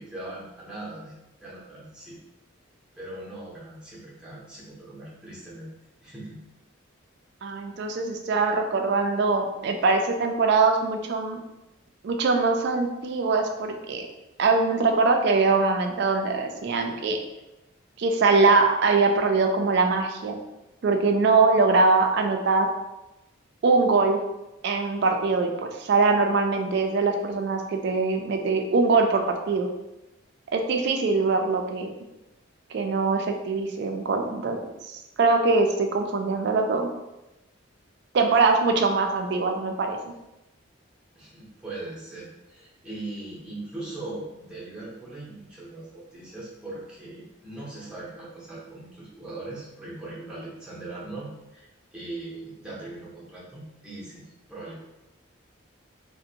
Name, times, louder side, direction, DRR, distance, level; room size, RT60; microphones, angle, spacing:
voice 1, 0.0-2.2 3.0-5.7 6.0-6.4 41.2-54.8, right 2 dB, 5° right, -8 dB, 0.6 m, -40 dB
voice 2, 7.4-11.4 12.0-14.1 14.4-17.2 18.0-20.4 20.8-22.7 23.6-24.2 24.6-29.7 30.5-31.9 32.7-34.6 35.2-36.9 38.1-40.1, right 3 dB, 55° right, 4 dB, 0.3 m, -22 dB
2.5 x 2.1 x 2.7 m, 0.95 s
head